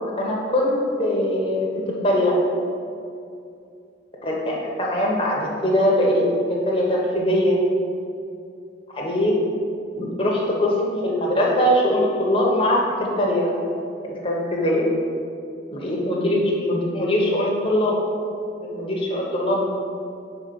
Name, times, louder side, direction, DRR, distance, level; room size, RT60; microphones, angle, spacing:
voice 1, 0.2-2.4 4.2-6.2 6.7-7.6 9.0-9.6 10.0-12.8 13.2-13.5 14.1-14.9 15.7-17.9 18.6-19.6, left 1 dB, 25° left, -3 dB, 1.1 m, -21 dB
5.1 x 4.3 x 6.0 m, 2.6 s
head